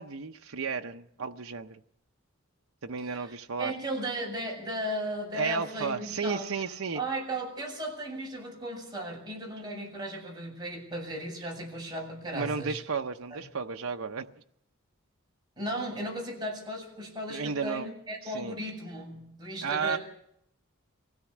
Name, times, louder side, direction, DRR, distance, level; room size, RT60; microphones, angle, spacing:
voice 1, 0.0-1.8 2.8-3.7 5.3-7.0 12.3-14.3 17.3-17.9 18.2-18.5 19.6-20.0, right 5 dB, 80° right, 0.8 m, -33 dB
voice 2, 3.0-6.5 6.9-12.8 13.3-13.4 15.6-20.0, right 1 dB, 20° right, 7.7 m, -36 dB
24.5 x 16.5 x 7.3 m
head